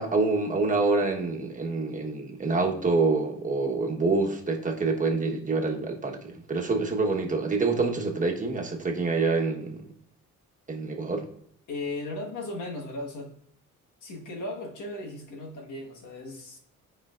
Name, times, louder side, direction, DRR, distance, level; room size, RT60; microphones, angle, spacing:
voice 1, 0.0-9.8 10.7-11.2, right 3 dB, 25° right, 1 dB, 1.2 m, -26 dB
voice 2, 11.7-13.3 14.0-16.6, left 2 dB, 80° left, 0 dB, 1.6 m, -36 dB
8.9 x 5.0 x 2.5 m, 0.67 s
cardioid pair, 90°, 30 cm